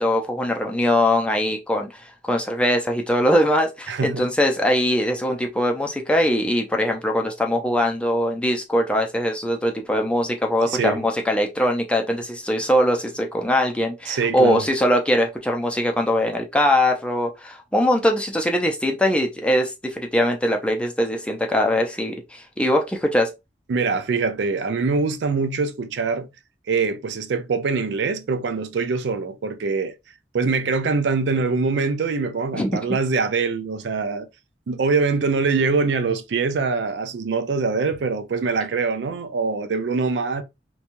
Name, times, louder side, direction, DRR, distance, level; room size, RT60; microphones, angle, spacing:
voice 1, 0.0-23.3 32.5-33.0, left 1 dB, 5° left, 0.4 m, -21 dB
voice 2, 3.9-4.3 10.7-11.0 14.1-14.7 23.7-26.3 26.7-29.9 30.3-34.3 34.7-40.4, right 4 dB, 75° right, 0.4 m, -23 dB
3.0 x 2.2 x 2.5 m
head